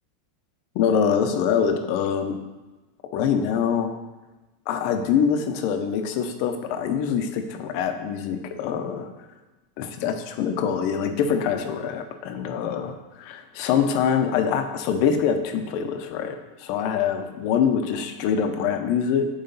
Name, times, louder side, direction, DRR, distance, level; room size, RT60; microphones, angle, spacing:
voice 1, 0.7-2.4 3.1-3.9 4.7-9.1 9.8-19.3, left 7 dB, 55° left, 6 dB, 0.7 m, -24 dB
7.8 x 3.2 x 4.0 m, 1.1 s
supercardioid pair, 135°, 0 cm